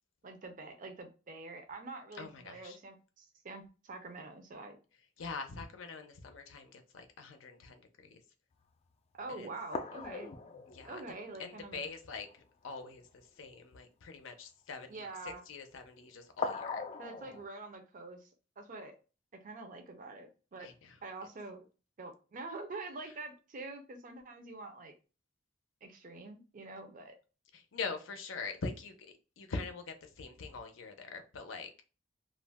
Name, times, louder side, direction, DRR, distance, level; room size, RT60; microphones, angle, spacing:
voice 1, 0.2-4.8 9.1-10.3 10.8-11.8 14.9-15.4 17.0-18.3 18.6-19.0 19.3-20.7 21.0-21.6 22.0-24.9 25.8-27.2, right 3 dB, 45° right, 0.5 m, -46 dB
voice 2, 2.2-2.8 5.2-8.2 9.4-9.5 10.7-11.0 11.4-12.3 12.6-13.0 13.4-15.0 15.2-16.8 20.6-20.9 27.5-31.7, left 4 dB, 85° left, 0.5 m, -43 dB
sound 1, 8.6-8.7 9.2-9.3 9.7-12.0 12.3-12.4 12.7-12.9 16.4-17.4, left 4 dB, 35° left, 0.3 m, -40 dB
2.4 x 2.1 x 3.3 m
head